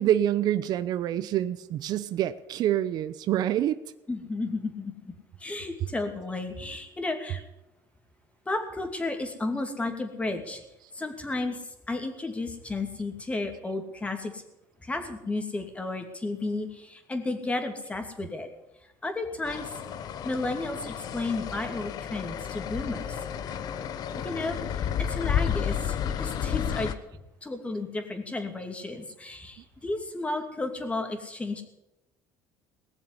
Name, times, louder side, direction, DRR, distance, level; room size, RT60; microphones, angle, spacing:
voice 1, 0.0-3.8, right 11 dB, 60° right, 14 dB, 0.7 m, -26 dB
voice 2, 4.1-5.1 5.4-7.4 8.5-10.6 10.9-11.6 11.9-14.4 14.8-18.5 19.0-19.7 20.2-23.2 24.1-26.9 27.4-31.6, left 2 dB, 15° left, 5 dB, 2.6 m, -33 dB
sound 1, 19.5-26.9, left 8 dB, 55° left, 1.1 m, -31 dB
19.0 x 7.1 x 9.7 m, 0.94 s
cardioid pair, 110°, 8 cm